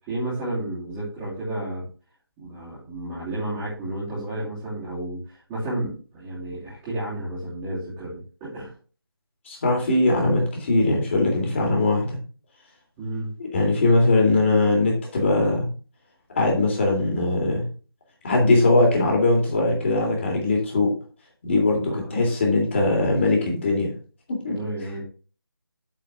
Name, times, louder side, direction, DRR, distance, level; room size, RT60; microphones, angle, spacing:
voice 1, 0.1-1.9 2.4-8.7 13.0-13.3 21.9-22.1 24.4-25.0, right 1 dB, 15° right, -10 dB, 2.9 m, -32 dB
voice 2, 9.4-12.2 13.5-15.7 16.3-17.6 18.2-20.9 21.4-23.9 24.4-24.5, left 2 dB, 30° left, 0 dB, 3.1 m, -20 dB
8.5 x 4.9 x 4.9 m, 0.37 s
figure-of-eight pair, 165°, 13 cm